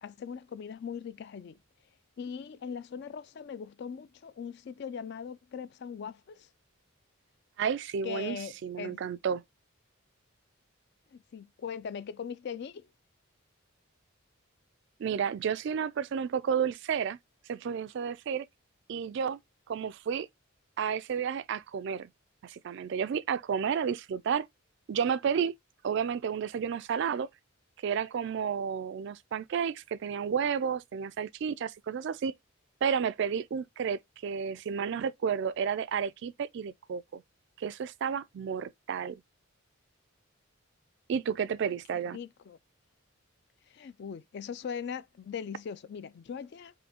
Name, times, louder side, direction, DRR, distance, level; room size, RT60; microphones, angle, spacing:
voice 1, 0.0-1.6 2.2-6.5 8.0-9.0 11.1-12.9 41.6-41.8 42.1-42.6 43.7-46.7, left 7 dB, 50° left, 0.3 m, -40 dB
voice 2, 7.6-9.4 15.0-17.2 17.5-18.5 18.9-19.4 19.7-20.3 20.8-22.1 22.4-24.5 24.9-25.5 25.8-27.3 27.8-32.3 32.8-37.2 37.6-39.2 41.1-42.2, right 7 dB, 55° right, 0.3 m, -31 dB
5.2 x 2.7 x 2.8 m
head